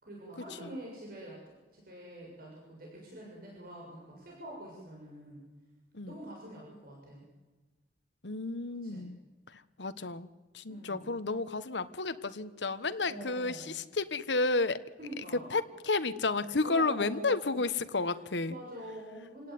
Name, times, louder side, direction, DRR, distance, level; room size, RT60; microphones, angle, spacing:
voice 1, 0.0-5.4 6.1-7.3 8.7-9.1 10.7-11.2 13.1-13.8 15.0-15.6 16.6-17.7 18.0-18.2 18.5-19.5, right 1 dB, 55° right, -2 dB, 7.0 m, -46 dB
voice 2, 8.2-9.2 9.5-10.3 10.5-14.8 15.3-18.6, left 3 dB, 85° left, 12 dB, 1.3 m, -32 dB
28.0 x 17.5 x 9.5 m, 1.2 s
head